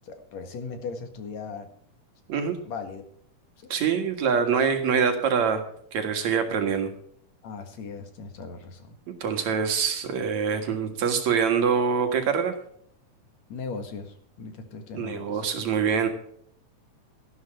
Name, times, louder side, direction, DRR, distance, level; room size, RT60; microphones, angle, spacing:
voice 1, 0.0-1.7 2.6-3.0 3.6-3.7 7.4-9.0 13.5-15.5, left 4 dB, 65° left, 6 dB, 2.9 m, -38 dB
voice 2, 3.7-5.6 5.9-6.9 9.2-12.5 14.9-16.1, right 6 dB, 65° right, 6 dB, 3.0 m, -24 dB
13.0 x 12.0 x 4.4 m, 0.64 s
omnidirectional pair, 3.5 m